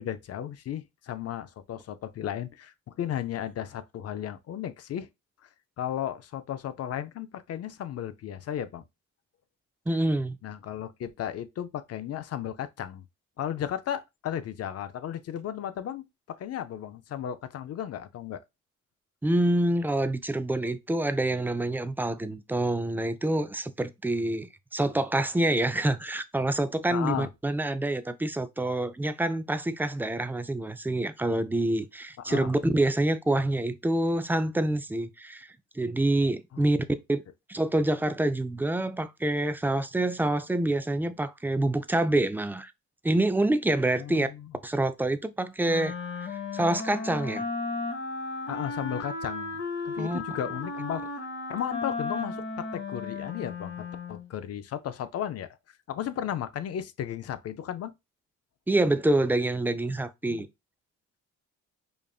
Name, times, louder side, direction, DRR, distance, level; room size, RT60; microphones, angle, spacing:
voice 1, 0.0-5.1 5.4-5.5 5.8-8.8 10.4-13.0 13.4-18.4 26.9-27.3 32.2-32.5 36.5-36.9 43.9-44.5 48.5-51.1 51.5-55.5 55.9-57.9 60.2-60.5, left 10 dB, 55° left, 0.5 m, -35 dB
voice 2, 9.9-10.4 19.2-35.5 35.8-36.8 37.1-37.2 37.5-42.7 43.0-44.3 44.6-45.9 46.5-47.5 50.0-50.2 58.7-60.5, right 1 dB, 5° right, 0.4 m, -26 dB
Wind instrument woodwind instrument, 45.6-54.3, left 3 dB, 40° left, 0.9 m, -35 dB
5.1 x 2.5 x 2.3 m
cardioid pair, 90°, 30 cm